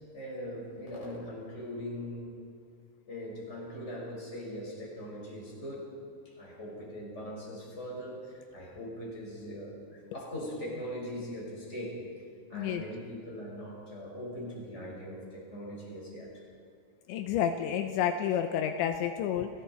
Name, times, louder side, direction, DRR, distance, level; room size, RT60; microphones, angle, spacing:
voice 1, 0.1-2.3 3.1-5.9 6.2-12.1 12.5-16.4, equal, 15° left, -3 dB, 5.8 m, -41 dB
voice 2, 17.1-19.5, left 9 dB, 80° left, 6 dB, 3.0 m, -30 dB
30.0 x 19.5 x 4.7 m, 2.3 s
omnidirectional pair, 5.4 m